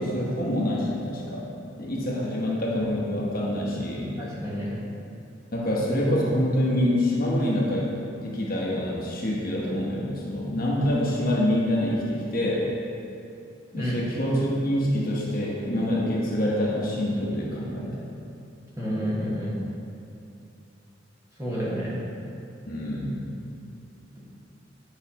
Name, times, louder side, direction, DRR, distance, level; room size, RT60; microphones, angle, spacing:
voice 1, 0.0-1.5 1.8-4.1 5.5-12.7 13.7-18.1 22.7-23.3, left 1 dB, 50° left, -4 dB, 1.1 m, -26 dB
voice 2, 4.2-4.8 13.7-14.0 18.8-19.5 21.4-22.0, equal, 20° right, -8 dB, 1.6 m, -29 dB
9.2 x 5.5 x 3.0 m, 2.7 s
head